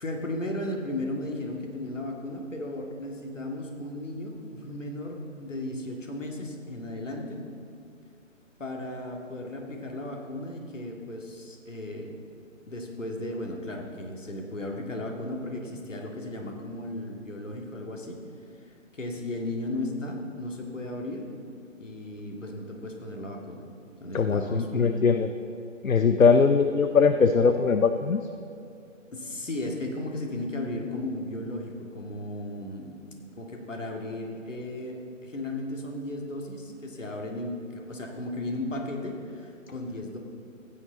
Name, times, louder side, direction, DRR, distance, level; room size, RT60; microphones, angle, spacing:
voice 1, 0.0-7.4 8.6-12.1 12.7-18.2 18.7-21.2 21.8-23.6 24.0-25.1 29.1-33.0 33.4-40.2, left 1 dB, 65° left, 1 dB, 2.2 m, -35 dB
voice 2, 24.1-25.3 25.8-28.2, left 5 dB, 85° left, 9 dB, 0.7 m, -21 dB
15.0 x 9.7 x 4.0 m, 2.6 s
figure-of-eight pair, 140°, 40 cm